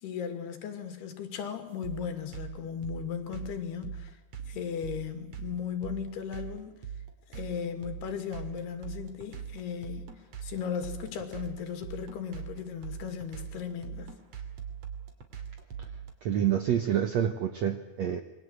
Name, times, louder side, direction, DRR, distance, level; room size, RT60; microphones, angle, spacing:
voice 1, 0.0-4.1 4.5-6.8 7.3-10.1 10.4-14.2, left 7 dB, 80° left, 8 dB, 4.4 m, -36 dB
sound 1, 1.8-16.1, right 8 dB, 45° right, 3.4 m, -41 dB
voice 2, 16.2-18.2, right 9 dB, 75° right, 9 dB, 1.6 m, -28 dB
27.0 x 22.0 x 8.0 m, 1.1 s
omnidirectional pair, 4.5 m